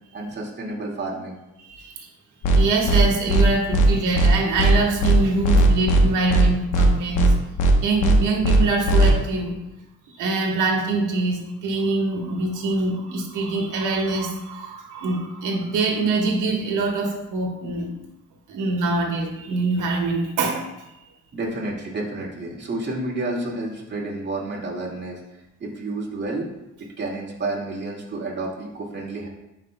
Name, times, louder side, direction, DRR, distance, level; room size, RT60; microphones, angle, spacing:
voice 1, 0.1-1.4 21.3-25.2 25.6-26.5 26.8-29.3, right 2 dB, 35° right, -4 dB, 2.0 m, -30 dB
voice 2, 1.6-2.1 2.5-7.3 7.8-9.6 10.1-17.9 18.5-20.8, right 3 dB, 85° right, 1 dB, 1.4 m, -24 dB
sound 1, 2.4-2.6 2.9-3.0 3.3-3.4 3.7-3.9 4.2-4.3 4.6-4.7 5.0-5.2 5.4-6.0 6.3-6.4 6.7-6.9 7.2-7.3 7.6-7.7 8.0-8.2 8.4-8.6 8.9-9.1, right 2 dB, 85° left, 1.0 m, -17 dB
10.0 x 5.0 x 2.2 m, 0.96 s
cardioid pair, 90°, 30 cm